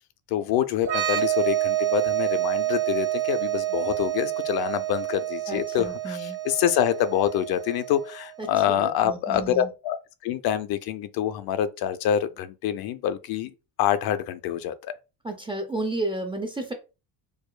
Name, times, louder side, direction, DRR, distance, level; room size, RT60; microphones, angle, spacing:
voice 1, 0.3-10.0 10.2-13.5 13.8-14.9, left 10 dB, 60° left, 0.5 m, -26 dB
sound 1, 0.8-8.3, right 14 dB, 45° right, 1.2 m, -28 dB
voice 2, 5.5-6.4 8.4-9.7 15.2-16.7, right 2 dB, 15° right, 0.4 m, -32 dB
4.7 x 2.3 x 2.2 m
cardioid pair, 140°, 43 cm